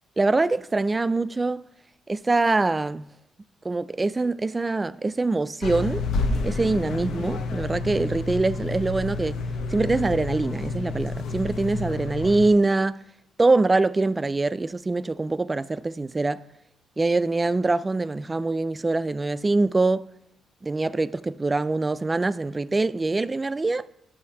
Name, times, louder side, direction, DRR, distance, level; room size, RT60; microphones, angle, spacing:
voice 1, 0.2-1.7 2.1-3.1 3.6-6.1 6.4-9.4 9.7-13.0 13.4-16.4 17.0-20.1 20.6-23.9, right 3 dB, 20° right, 0.3 m, -24 dB
sound 1, 5.6-12.5, left 3 dB, 75° left, 0.7 m, -29 dB
11.5 x 7.0 x 2.8 m
cardioid pair, 90°, 0 cm